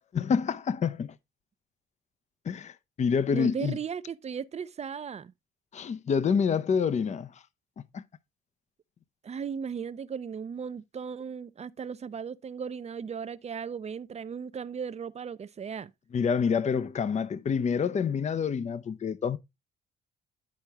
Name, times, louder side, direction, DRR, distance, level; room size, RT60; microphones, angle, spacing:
voice 1, 0.1-1.1 2.5-3.8 5.7-7.3 7.9-8.0 16.1-19.4, left 6 dB, 35° left, 0.5 m, -27 dB
voice 2, 3.3-5.3 9.2-15.9, right 7 dB, 35° right, 0.5 m, -36 dB
10.5 x 4.4 x 3.4 m
cardioid pair, 90°, 20 cm